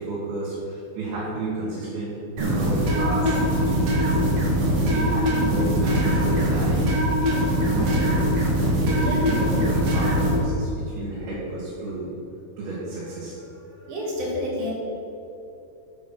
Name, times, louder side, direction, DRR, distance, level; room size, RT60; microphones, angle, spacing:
voice 1, 0.0-7.1 7.8-8.2 8.8-9.7 9.9-12.1 12.6-13.9, right 2 dB, 90° right, -8 dB, 4.1 m, -32 dB
sound 1, 2.4-10.4, equal, 45° right, 2.5 m, -22 dB
voice 2, 7.7-8.0 9.0-9.3 13.9-14.7, left 1 dB, 70° right, -4 dB, 4.1 m, -30 dB
9.7 x 8.7 x 5.9 m, 2.9 s
omnidirectional pair, 4.2 m